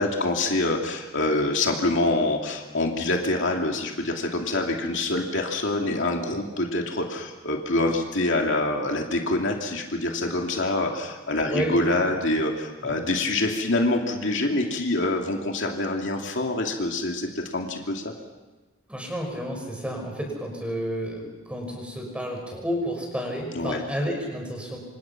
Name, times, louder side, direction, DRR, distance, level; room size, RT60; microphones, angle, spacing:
voice 1, 0.0-18.1 23.5-23.8, left 2 dB, 60° left, 1 dB, 2.7 m, -25 dB
voice 2, 11.4-11.8 12.8-13.0 18.9-24.8, equal, 5° right, 1 dB, 5.9 m, -31 dB
28.0 x 26.5 x 6.0 m, 1.2 s
head